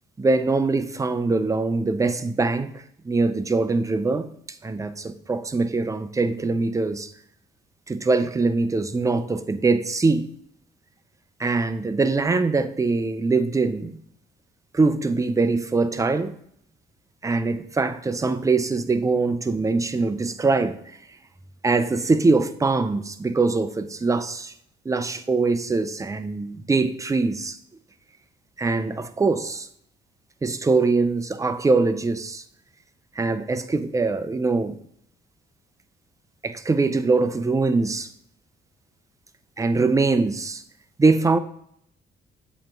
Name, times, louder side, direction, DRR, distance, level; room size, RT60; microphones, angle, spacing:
voice 1, 0.2-4.3 4.6-7.1 7.9-10.3 11.4-14.0 14.7-16.4 17.2-21.0 21.6-24.5 24.9-27.6 28.6-29.7 30.4-32.4 33.2-34.8 36.4-38.1 39.6-40.6 41.0-41.4, right 3 dB, 15° right, 0.5 m, -23 dB
7.4 x 3.1 x 4.4 m
cardioid pair, 90°, 20 cm